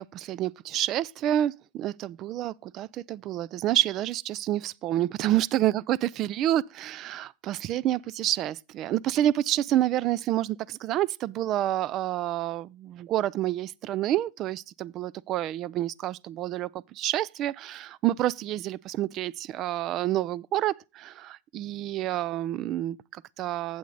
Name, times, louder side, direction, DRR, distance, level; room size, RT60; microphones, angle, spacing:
voice 1, 0.0-23.8, right 13 dB, 45° right, 0.4 m, -28 dB
8.3 x 7.8 x 4.0 m
hypercardioid pair, 115°, 0 cm